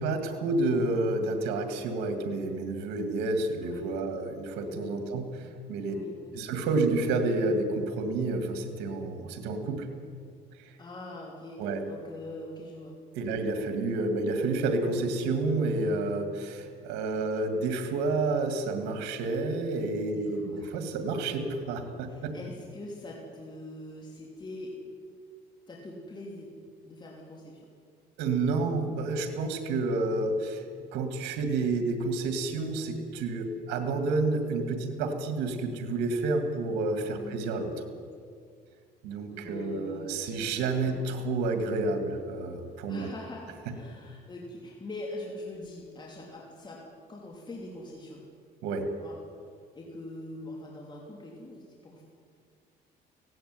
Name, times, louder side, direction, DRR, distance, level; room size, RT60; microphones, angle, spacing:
voice 1, 0.0-6.0 6.3-9.9 10.6-10.8 11.6-11.8 13.1-22.3 28.2-30.6 30.9-37.8 39.0-43.1 48.6-48.9, right 3 dB, 90° right, 6 dB, 2.2 m, -30 dB
voice 2, 5.8-6.5 10.8-12.9 13.2-13.4 20.0-20.8 22.1-24.8 25.7-26.5 26.8-27.7 29.2-29.4 37.1-37.5 39.3-40.2 40.8-41.0 42.9-46.8 47.1-48.2 49.0-49.2 49.7-52.0, left 1 dB, 25° left, -1 dB, 3.1 m, -43 dB
17.0 x 17.0 x 9.6 m, 2.2 s
cardioid pair, 110°, 17 cm